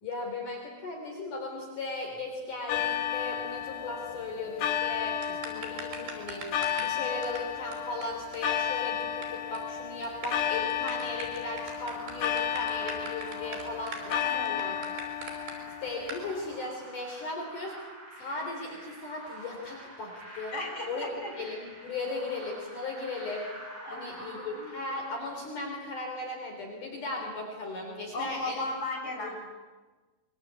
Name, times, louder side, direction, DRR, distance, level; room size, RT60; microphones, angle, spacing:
voice 1, 0.0-6.5 6.8-15.0 15.8-17.7 18.2-20.5 20.9-21.1 21.4-23.5 23.9-28.7 29.2-29.3, left 3 dB, 55° left, 1 dB, 4.8 m, -37 dB
sound 1, 2.7-16.6, left 9 dB, 70° left, 3.3 m, -33 dB
sound 2, 5.2-6.9 7.2-7.4 7.7-7.8 8.0-8.1 8.3-8.4 8.7-9.2 9.5-9.7 10.0-15.5 16.1-16.2, right 4 dB, 85° right, 6.7 m, -41 dB
sound 3, 11.5-25.9, right 1 dB, 35° right, 7.8 m, -48 dB
voice 2, 14.2-14.6 20.5-21.3 23.8-24.7 28.1-29.4, left 2 dB, 15° left, 1 dB, 6.0 m, -36 dB
25.0 x 23.0 x 8.3 m, 1.3 s
omnidirectional pair, 4.6 m